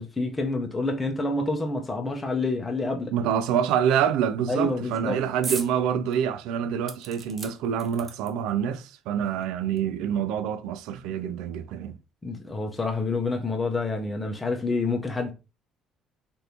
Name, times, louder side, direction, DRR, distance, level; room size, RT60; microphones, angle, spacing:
voice 1, 0.0-3.1 4.5-5.2 12.2-15.3, left 2 dB, 20° left, 0.8 m, -28 dB
voice 2, 3.1-12.0, right 8 dB, 80° right, 0.3 m, -26 dB
sound 1, 5.4-5.7 6.1-6.2 6.9-8.5 9.4-9.5 9.8-9.9, right 4 dB, 35° right, 0.6 m, -36 dB
3.2 x 2.6 x 2.8 m
supercardioid pair, 80°, 0 cm